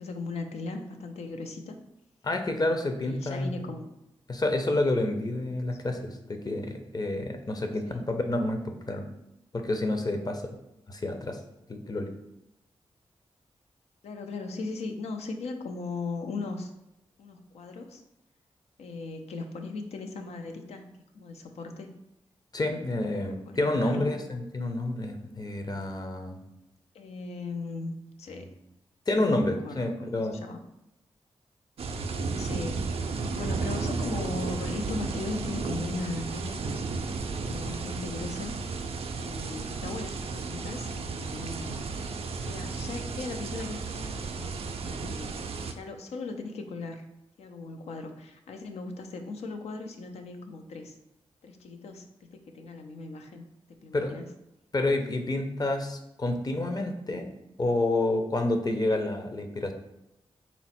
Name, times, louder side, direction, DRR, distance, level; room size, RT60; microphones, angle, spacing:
voice 1, 0.0-1.8 3.0-3.9 7.9-8.0 14.0-16.7 17.2-18.0 18.8-20.9 21.1-21.9 23.1-24.1 26.9-27.9 28.2-28.5 29.2-30.6 32.4-32.9 33.4-36.6 37.3-38.5 39.2-41.8 42.4-45.3 45.7-47.1 47.4-51.0 51.4-52.1 52.3-53.4 53.8-54.3, left 3 dB, 85° left, 6 dB, 0.4 m, -38 dB
voice 2, 2.2-3.5 4.3-9.1 9.5-10.6 10.9-11.4 11.7-12.1 22.5-26.4 28.3-28.4 29.1-30.4 53.9-54.1 54.7-57.3 57.6-59.7, left 2 dB, 40° left, 6 dB, 0.6 m, -29 dB
sound 1, 31.8-45.7, right 4 dB, 65° right, 0.4 m, -33 dB
4.1 x 2.0 x 4.2 m, 0.90 s
cardioid pair, 45°, 11 cm